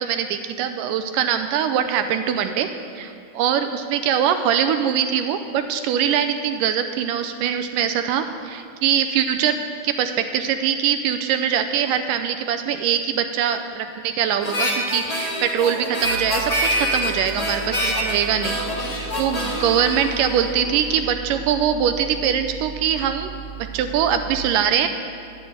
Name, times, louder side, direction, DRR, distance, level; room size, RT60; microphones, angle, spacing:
voice 1, 0.0-2.7 3.0-9.6 9.8-18.9 19.2-23.3 23.7-24.9, right 8 dB, 80° right, 8 dB, 2.0 m, -22 dB
Harmonica, 14.4-20.9, equal, 20° left, 0.9 m, -26 dB
sound 1, 16.0-24.4, right 7 dB, 60° right, 1.9 m, -37 dB
10.5 x 9.7 x 9.0 m, 2.4 s
omnidirectional pair, 4.2 m